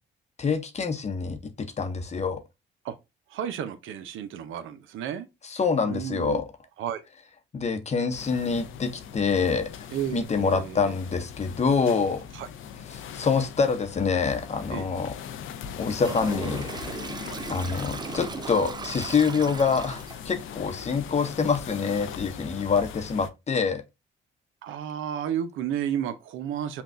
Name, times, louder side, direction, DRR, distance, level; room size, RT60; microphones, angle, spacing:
voice 1, 0.4-1.4 1.8-2.4 5.5-6.4 7.5-9.7 10.1-12.2 12.9-15.1 15.8-16.7 17.0-17.1 17.5-23.8, left 5 dB, 35° left, 0.8 m, -26 dB
voice 2, 3.3-5.3 5.8-6.4 6.8-7.0 9.9-10.9 12.3-12.5 14.7-14.9 17.3-17.4 24.6-26.8, right 9 dB, 80° right, 0.6 m, -32 dB
sound 1, 8.1-23.3, left 8 dB, 80° left, 0.5 m, -40 dB
Toilet flush, 16.0-20.3, right 5 dB, 20° right, 0.3 m, -37 dB
5.8 x 2.3 x 2.5 m
cardioid pair, 90°, 20 cm